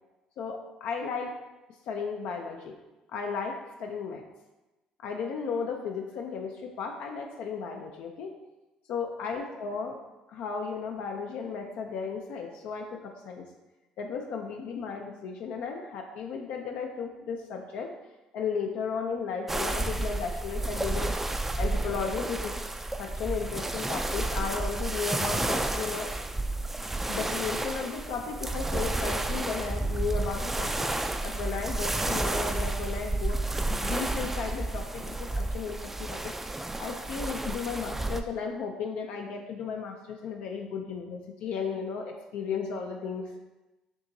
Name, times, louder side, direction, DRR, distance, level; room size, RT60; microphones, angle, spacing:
voice 1, 0.4-1.3 1.9-2.7 3.1-4.2 5.0-8.3 8.9-10.0 10.3-13.5 14.0-17.9 18.3-21.1 21.6-22.5 23.0-26.2 27.1-30.9 31.2-33.4 33.7-43.2, left 5 dB, 75° left, 2 dB, 0.4 m, -34 dB
sound 1, 19.5-38.2, right 2 dB, 10° right, 0.3 m, -31 dB
6.0 x 2.9 x 2.7 m, 1.1 s
supercardioid pair, 80°, 2 cm